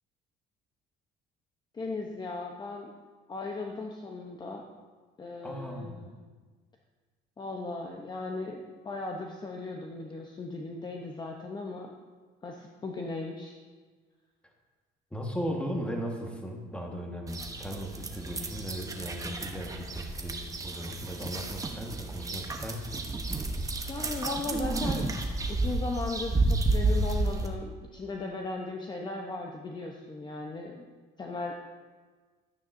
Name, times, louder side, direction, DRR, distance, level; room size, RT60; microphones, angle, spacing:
voice 1, 1.7-2.9 3.3-4.6 5.2-6.2 7.4-11.9 12.4-13.6 23.8-25.1 25.5-30.9 31.2-31.5, left 3 dB, 25° left, 1 dB, 0.8 m, -37 dB
voice 2, 5.4-6.1 15.1-23.1, equal, 5° left, 1 dB, 1.4 m, -37 dB
sound 1, 17.3-27.5, right 2 dB, 20° right, 0.9 m, -31 dB
11.5 x 9.2 x 2.6 m, 1.4 s
cardioid pair, 110°, 17 cm